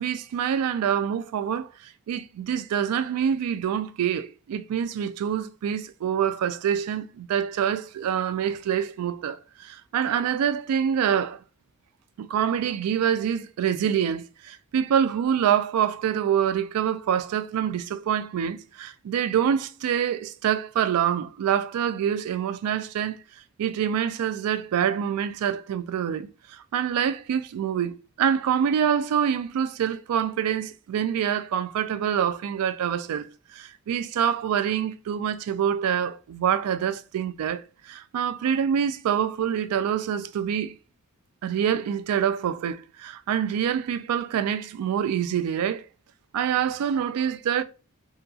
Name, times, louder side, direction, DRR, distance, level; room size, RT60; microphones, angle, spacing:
voice 1, 0.0-1.7 2.1-11.4 12.2-23.2 23.6-40.8 41.4-45.9 46.3-47.6, right 8 dB, 85° right, 0.3 m, -26 dB
2.8 x 2.6 x 2.3 m
head